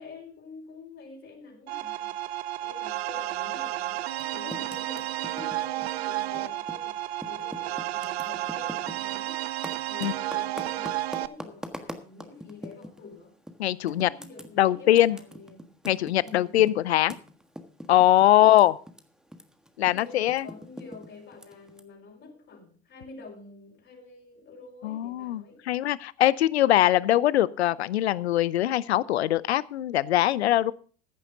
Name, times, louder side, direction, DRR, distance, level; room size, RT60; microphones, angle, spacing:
voice 1, 0.0-2.2 2.6-9.4 9.8-13.4 13.8-15.8 16.2-16.5 19.8-25.7, left 4 dB, 40° left, -2 dB, 5.0 m, -47 dB
sound 1, 1.7-11.3, right 15 dB, 70° right, 0.7 m, -32 dB
Typing, 4.1-6.9 7.2-13.0 13.5-13.6 13.9-19.0 19.3-21.8, equal, ahead, 1.5 m, -42 dB
voice 2, 13.6-14.1 14.6-15.2 15.8-17.2 17.9-18.7 19.8-20.5 24.8-30.7, left 13 dB, 80° left, 21 dB, 0.6 m, -22 dB
15.0 x 10.0 x 3.8 m, 0.41 s
hypercardioid pair, 75°, 32 cm